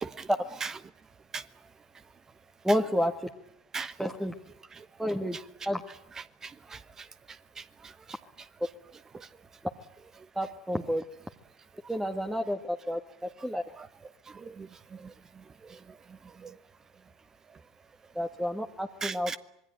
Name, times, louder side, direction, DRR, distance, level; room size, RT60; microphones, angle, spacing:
voice 1, 2.6-3.1 4.0-4.3 5.0-5.4 5.7-5.8 10.4-11.0 11.9-13.6 18.2-19.4, equal, 5° right, 1.7 m, -30 dB
voice 2, 6.4-7.1 7.6-7.9 9.1-9.3 13.8-13.9 14.3-15.1 15.7-15.8 16.4-16.5 19.0-19.4, right 5 dB, 25° right, 1.1 m, -39 dB
26.5 x 21.5 x 9.3 m
hypercardioid pair, 80°, 2 cm